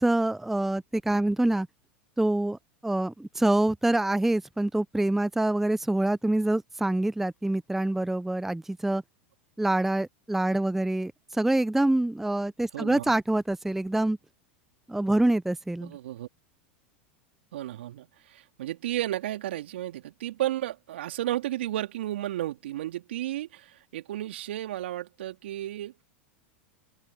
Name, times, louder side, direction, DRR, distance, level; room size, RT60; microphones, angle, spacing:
voice 1, 0.0-1.7 2.2-9.0 9.6-14.2 14.9-15.9, right 1 dB, 5° right, 0.6 m, -26 dB
voice 2, 12.7-13.1 15.8-16.3 17.5-26.0, right 13 dB, 70° right, 2.5 m, -33 dB
open air
hypercardioid pair, 90°, 6 cm